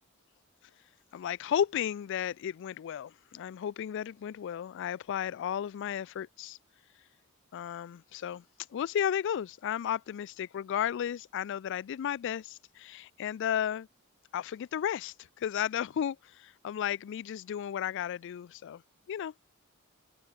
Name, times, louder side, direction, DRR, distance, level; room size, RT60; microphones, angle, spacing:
voice 1, 1.1-6.6 7.5-8.4 8.7-13.9 14.3-18.8 19.1-19.3, left 9 dB, 60° left, 0.3 m, -34 dB
head